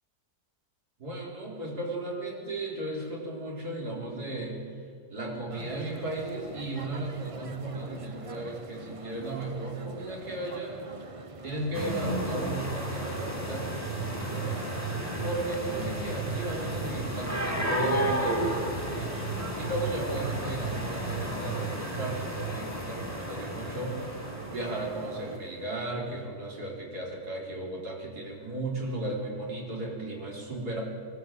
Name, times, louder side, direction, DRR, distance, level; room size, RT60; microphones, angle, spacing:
voice 1, 1.0-4.7 5.1-11.0 11.4-14.9 15.2-19.1 19.5-30.8, right 2 dB, 60° right, -2 dB, 4.8 m, -35 dB
sound 1, 5.5-25.4, right 3 dB, 30° right, 0.6 m, -44 dB
sound 2, 11.7-25.2, right 1 dB, 10° right, 3.0 m, -32 dB
23.5 x 12.5 x 9.0 m, 2.5 s
omnidirectional pair, 1.8 m